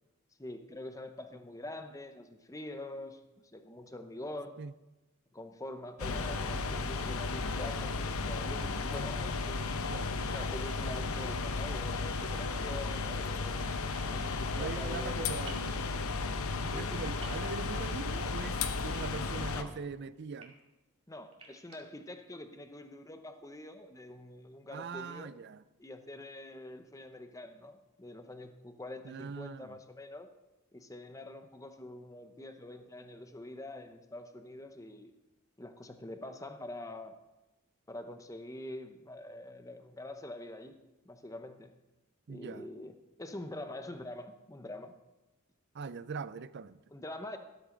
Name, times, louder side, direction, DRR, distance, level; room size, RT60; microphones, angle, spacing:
voice 1, 0.4-4.6 5.3-9.8 10.3-13.7 14.1-15.4 16.7-16.9 19.5-19.7 21.1-25.3 25.8-30.3 30.7-35.1 35.6-37.1 37.9-40.8 41.0-41.7 42.3-42.9 43.2-44.9 46.9-47.4, left 1 dB, 15° left, 8 dB, 0.8 m, -45 dB
sound 1, 6.0-19.6, left 4 dB, 70° left, 0.8 m, -34 dB
sound 2, 13.9-14.1 15.5-15.7 17.2-17.4 18.9-19.5 20.2-20.5 21.3-21.8, right 5 dB, 25° right, 1.9 m, -50 dB
voice 2, 14.6-16.1 16.7-20.6 24.7-25.6 29.0-29.8 42.3-42.7 45.7-46.8, right 5 dB, 50° right, 16 dB, 0.4 m, -42 dB
13.0 x 13.0 x 3.9 m, 1.1 s
head